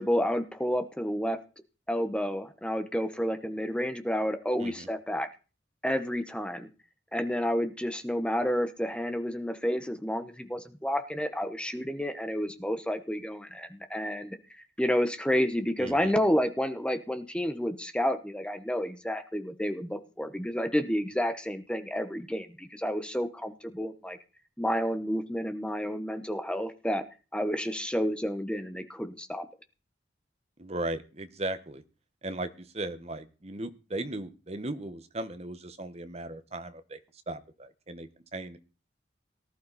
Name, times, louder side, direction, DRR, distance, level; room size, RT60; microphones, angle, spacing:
voice 1, 0.0-1.4 1.9-5.3 5.8-6.7 7.1-14.4 14.8-24.2 24.6-27.0 27.3-29.5, equal, 5° left, 9 dB, 1.1 m, -30 dB
voice 2, 15.8-16.1 30.6-31.8 32.2-37.0 37.3-38.6, right 2 dB, 35° right, 10 dB, 1.3 m, -37 dB
18.5 x 11.5 x 4.2 m, 0.34 s
head